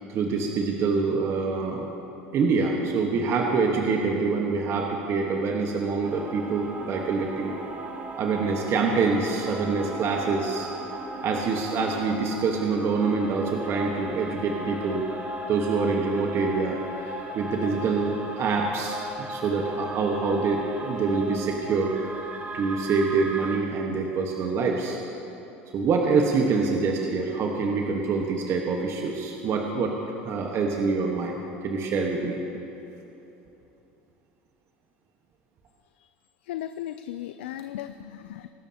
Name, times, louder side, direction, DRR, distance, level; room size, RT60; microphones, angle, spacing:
voice 1, 0.1-1.9 2.3-7.5 8.2-10.7 11.2-15.0 15.5-16.8 17.3-21.9 22.5-25.0 25.7-30.0 30.2-32.4, right 4 dB, 45° right, 1 dB, 1.3 m, -25 dB
sound 1, 6.0-23.6, right 1 dB, 25° right, 2.0 m, -37 dB
voice 2, 36.5-38.5, left 12 dB, 80° left, 10 dB, 0.4 m, -36 dB
23.5 x 12.5 x 2.9 m, 3.0 s
hypercardioid pair, 85°, 6 cm